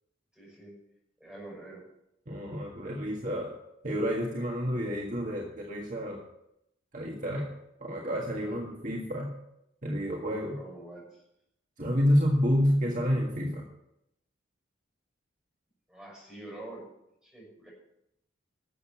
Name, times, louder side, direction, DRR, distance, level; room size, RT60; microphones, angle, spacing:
voice 1, 0.3-0.7 1.2-1.8 8.4-8.6 10.4-11.2 15.9-16.9 17.2-17.7, right 2 dB, 5° right, -4 dB, 6.5 m, -46 dB
voice 2, 2.3-3.5 3.8-6.2 6.9-7.5 7.8-9.3 9.8-10.6 11.8-13.6, equal, 40° right, -1 dB, 1.8 m, -29 dB
12.5 x 8.1 x 7.2 m, 0.80 s
head